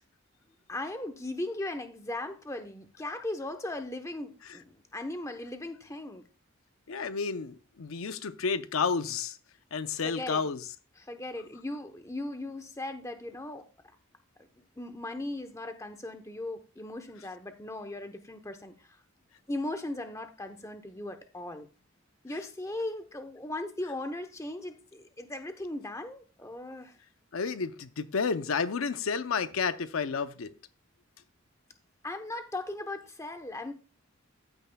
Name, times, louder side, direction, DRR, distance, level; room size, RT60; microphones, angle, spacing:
voice 1, 0.7-6.2 10.0-10.4 11.0-13.6 14.8-19.0 19.5-21.7 22.2-26.9 32.0-33.7, left 2 dB, 15° left, 0.9 m, -38 dB
voice 2, 6.9-9.4 9.7-10.6 27.3-30.5, left 5 dB, 80° left, 0.6 m, -31 dB
14.0 x 9.0 x 2.3 m
head